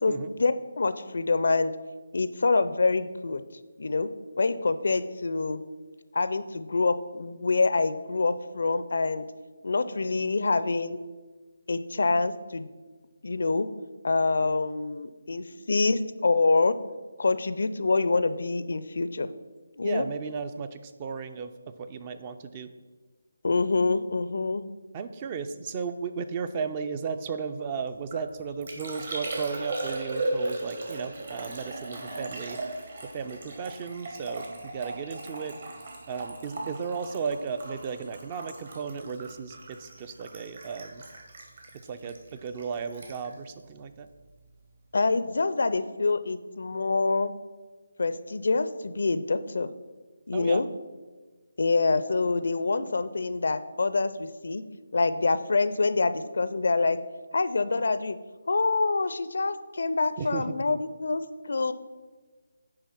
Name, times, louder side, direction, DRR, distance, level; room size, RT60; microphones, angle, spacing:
voice 1, 0.0-1.7 2.1-3.4 3.8-4.1 4.4-5.6 6.1-9.2 9.6-11.0 11.7-12.7 13.2-13.7 14.0-16.7 17.2-19.3 19.8-20.1 23.4-24.6 44.9-47.3 48.0-49.7 50.3-50.7 51.6-54.6 54.9-57.0 57.3-58.2 58.5-61.7, left 3 dB, 65° left, 13 dB, 0.4 m, -26 dB
voice 2, 19.8-22.7 24.9-32.6 33.1-35.6 36.1-41.0 41.9-44.1 50.3-50.6 60.2-60.8, right 5 dB, 25° right, 11 dB, 0.4 m, -35 dB
Liquid, 27.9-44.5 44.7-45.3, right 2 dB, 55° right, 1.9 m, -38 dB
9.6 x 3.4 x 5.7 m, 1.4 s
figure-of-eight pair, 155°, 0 cm